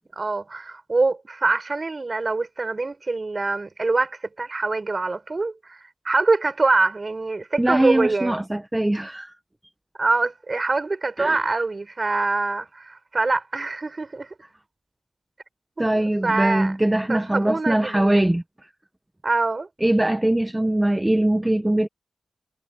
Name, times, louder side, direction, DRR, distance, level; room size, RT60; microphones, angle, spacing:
voice 1, 0.2-5.8 6.0-8.4 10.0-14.3 15.8-16.7 17.1-18.3 19.2-19.7, right 3 dB, 35° right, 5.5 m, -24 dB
voice 2, 7.6-9.3 11.2-11.4 15.8-18.7 19.8-21.9, right 1 dB, 10° right, 0.8 m, -22 dB
wide cardioid pair, 105°, 0 cm